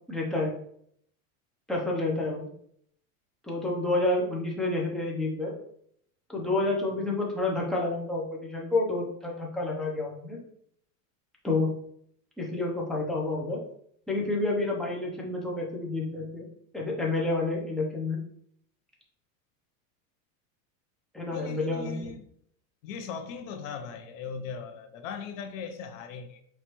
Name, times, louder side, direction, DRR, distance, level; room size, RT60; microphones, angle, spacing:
voice 1, 0.1-0.5 1.7-2.5 3.5-5.5 6.3-10.4 11.4-11.7 12.4-13.6 14.1-16.5 16.7-18.2 21.1-22.1, left 2 dB, ahead, 0.6 m, -29 dB
voice 2, 21.3-22.3 22.8-26.4, left 6 dB, 70° left, 0.7 m, -38 dB
4.7 x 3.1 x 2.9 m
supercardioid pair, 160°, 41 cm